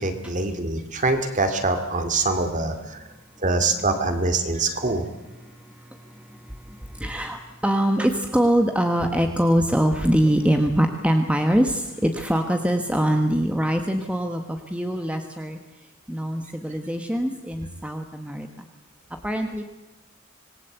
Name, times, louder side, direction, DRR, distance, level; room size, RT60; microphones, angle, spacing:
voice 1, 0.0-3.0 3.4-5.0, right 3 dB, 35° right, 7 dB, 2.6 m, -24 dB
voice 2, 5.4-15.6 16.1-18.7 19.2-19.6, equal, 5° right, 5 dB, 1.3 m, -23 dB
26.0 x 20.0 x 8.1 m, 1.1 s
head